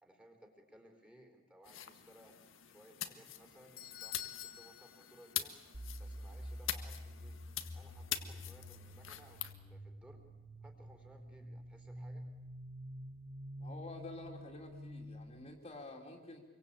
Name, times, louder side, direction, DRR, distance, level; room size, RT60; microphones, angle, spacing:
voice 1, 0.0-2.3 2.6-5.6 6.0-7.4 7.7-10.3 10.6-12.2, right 1 dB, 5° right, 3 dB, 4.1 m, -61 dB
sound 1, 1.6-9.5, left 11 dB, 75° left, 1.7 m, -44 dB
Doorbell, 3.3-5.8 6.1-6.2 6.9-7.0, left 11 dB, 45° left, 1.4 m, -49 dB
sound 2, 5.7-15.5, equal, 60° right, 2.2 m, -48 dB
voice 2, 13.6-16.4, left 2 dB, 30° left, 1 dB, 3.0 m, -49 dB
27.0 x 23.5 x 8.8 m, 1.1 s
head